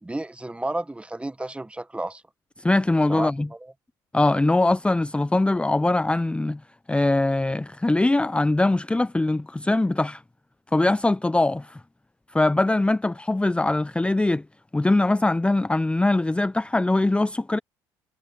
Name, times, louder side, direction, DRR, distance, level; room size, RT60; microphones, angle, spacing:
voice 1, 0.0-2.2 3.1-3.7, right 2 dB, 10° right, 1.1 m, -32 dB
voice 2, 2.6-3.5 4.1-6.6 6.9-10.2 10.7-11.8 12.3-14.4 14.7-17.6, left 2 dB, 10° left, 0.6 m, -22 dB
hypercardioid pair, 60°, 10 cm